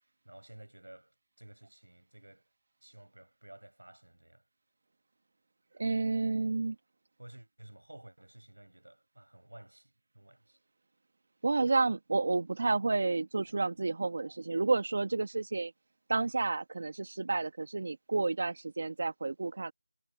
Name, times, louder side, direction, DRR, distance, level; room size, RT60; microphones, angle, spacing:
voice 1, 0.2-2.5 2.8-4.4 7.2-10.6, right 1 dB, 90° right, 7.1 m, -54 dB
voice 2, 5.8-6.7 11.4-15.7 16.1-19.7, right 3 dB, 45° right, 1.3 m, -30 dB
figure-of-eight pair, 170°, 0 cm